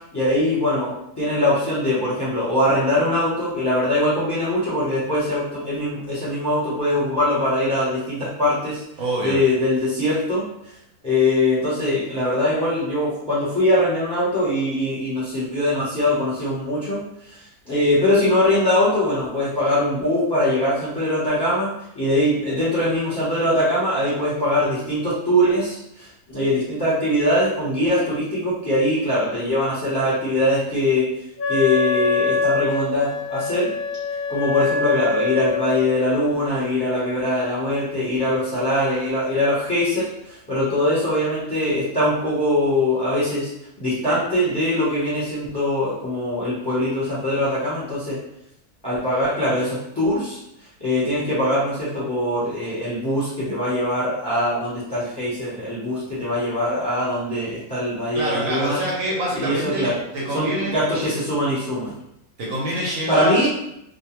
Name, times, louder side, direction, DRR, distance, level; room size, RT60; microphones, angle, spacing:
voice 1, 0.1-8.8 9.2-10.4 11.0-17.0 17.3-17.4 17.7-31.0 31.5-33.7 34.3-43.5 43.8-48.2 48.8-50.4 50.8-58.8 59.3-60.0 60.3-61.9 63.1-63.5, left 1 dB, 20° left, -10 dB, 0.8 m, -22 dB
voice 2, 9.0-9.4 58.1-61.1 62.4-63.4, right 1 dB, 65° right, -4 dB, 1.0 m, -26 dB
Wind instrument woodwind instrument, 31.4-35.9, left 5 dB, 70° left, 0.5 m, -24 dB
2.4 x 2.2 x 3.0 m, 0.80 s
omnidirectional pair, 1.6 m